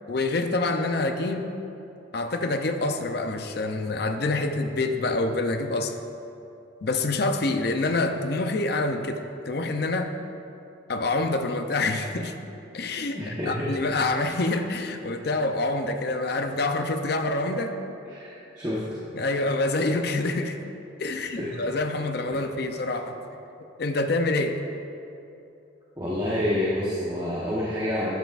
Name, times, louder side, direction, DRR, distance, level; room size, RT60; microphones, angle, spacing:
voice 1, 0.1-1.4 2.1-5.9 6.8-10.1 10.9-12.3 12.7-17.7 19.1-20.6 21.0-23.2 23.8-24.6, left 2 dB, 55° left, 6 dB, 0.5 m, -26 dB
voice 2, 13.1-13.7 18.1-19.0 21.1-21.6 26.0-28.2, left 1 dB, 20° right, -7 dB, 1.0 m, -28 dB
12.5 x 9.0 x 2.5 m, 2.7 s
head